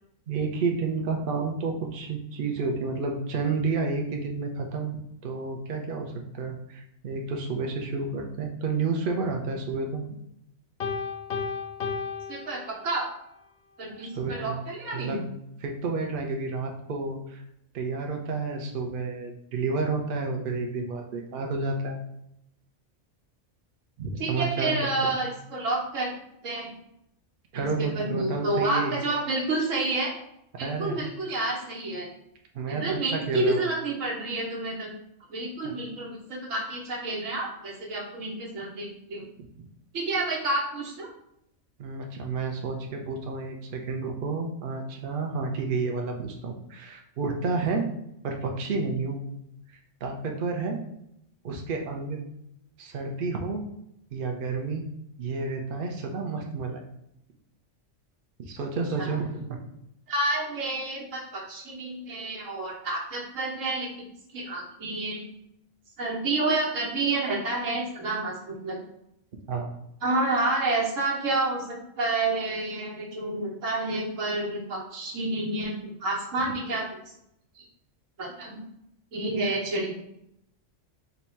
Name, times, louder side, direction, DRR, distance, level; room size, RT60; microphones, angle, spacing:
voice 1, 0.3-5.0 5.2-10.0 14.0-14.5 14.9-15.3 15.6-17.4 17.7-22.0 24.0-24.7 25.0-25.2 27.5-29.0 30.5-31.0 32.5-33.6 35.6-35.7 41.8-47.8 48.2-49.2 49.7-50.8 51.4-52.2 52.8-53.6 54.1-54.9 55.2-56.8 58.5-59.6 69.5-69.7 79.3-79.4, right 4 dB, 55° right, 2 dB, 0.7 m, -30 dB
Piano, 10.8-13.2, left 5 dB, 60° left, 0.7 m, -33 dB
voice 2, 12.3-13.1 13.8-15.2 24.2-26.1 26.4-26.7 27.5-27.7 27.9-30.1 30.6-32.1 32.7-34.9 35.3-39.2 39.9-41.1 59.0-59.1 60.1-64.1 64.3-65.2 66.0-68.8 70.0-76.9 77.6-77.7 78.2-78.6 79.1-79.9, right 2 dB, 90° right, -3 dB, 1.4 m, -29 dB
3.9 x 2.3 x 4.2 m, 0.78 s
omnidirectional pair, 1.3 m